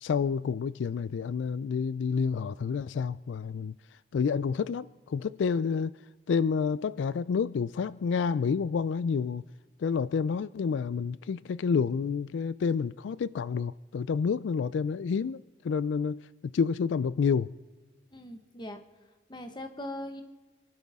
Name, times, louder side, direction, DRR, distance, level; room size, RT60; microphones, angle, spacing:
voice 1, 0.0-3.7 4.1-5.9 6.3-9.4 9.8-17.5, left 6 dB, 85° left, 0.3 m, -29 dB
voice 2, 18.1-18.8 19.3-20.2, left 1 dB, 25° left, 1.3 m, -40 dB
27.0 x 12.0 x 3.6 m
head